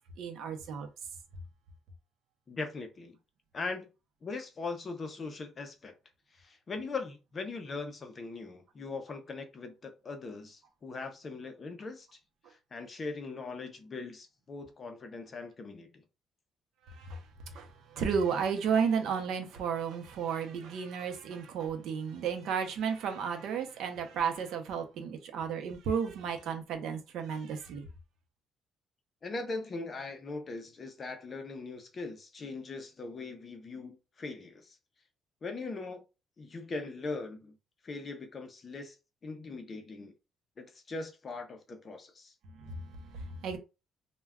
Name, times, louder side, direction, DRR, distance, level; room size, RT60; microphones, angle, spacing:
voice 1, 0.2-0.9 16.9-17.2 17.5-27.9 42.6-43.6, right 6 dB, 65° right, 0.6 m, -33 dB
voice 2, 2.5-3.2 3.5-3.9 4.2-5.9 6.3-12.1 12.5-16.0 29.2-34.8 35.4-36.0 36.4-37.5 37.8-38.9 39.2-40.1 40.6-42.3, left 3 dB, 25° left, 0.5 m, -40 dB
2.2 x 2.1 x 3.4 m
cardioid pair, 170°, 0 cm